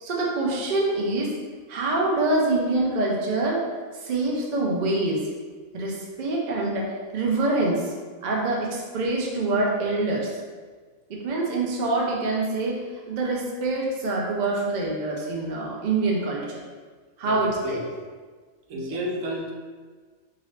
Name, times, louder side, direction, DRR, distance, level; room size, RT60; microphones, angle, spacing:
voice 1, 0.0-1.3 1.7-3.7 4.0-5.3 5.7-7.9 8.2-10.3 11.1-12.8 13.1-16.6 17.2-17.8 18.7-18.8, right 2 dB, 60° right, -3 dB, 0.5 m, -25 dB
voice 2, 17.2-18.1 18.7-19.5, equal, 85° right, -1 dB, 1.0 m, -32 dB
2.8 x 2.6 x 3.1 m, 1.5 s
omnidirectional pair, 1.4 m